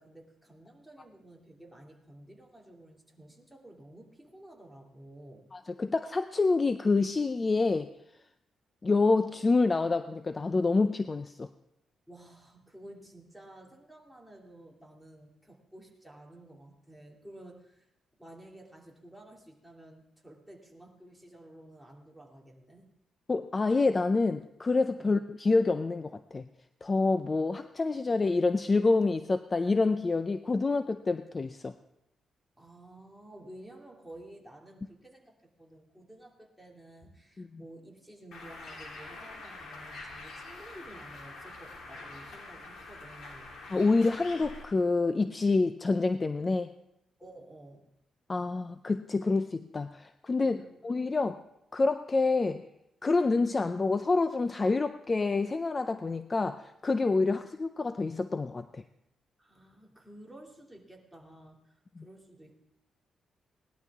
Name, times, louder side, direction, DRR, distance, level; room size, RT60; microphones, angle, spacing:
voice 1, 0.0-5.4 12.1-17.9 18.2-22.9 25.0-25.2 32.6-43.5 47.2-47.9 50.4-50.7 59.4-62.6, right 1 dB, ahead, -1 dB, 2.5 m, -52 dB
voice 2, 5.5-7.9 8.8-11.5 23.3-26.5 26.8-31.7 37.4-37.5 43.6-46.7 48.3-51.4 51.7-52.7 53.0-58.8 62.0-62.1, left 3 dB, 30° left, 10 dB, 0.4 m, -27 dB
Bird, 38.3-44.6, left 2 dB, 70° left, 3.1 m, -45 dB
18.5 x 12.0 x 3.6 m, 0.84 s
cardioid pair, 110°, 0 cm